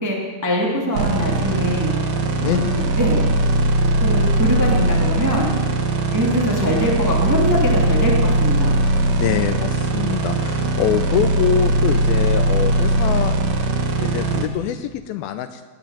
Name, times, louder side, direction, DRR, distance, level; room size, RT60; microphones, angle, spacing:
voice 1, 0.4-1.9 2.4-3.3 4.0-5.5 6.1-8.8, equal, 5° right, -3 dB, 1.8 m, -22 dB
sound 1, 0.9-14.5, right 2 dB, 75° right, 1.5 m, -20 dB
voice 2, 2.4-2.8 9.2-13.4 14.0-15.6, left 10 dB, 85° left, 9 dB, 2.1 m, -24 dB
18.5 x 8.0 x 9.0 m, 1.4 s
omnidirectional pair, 4.9 m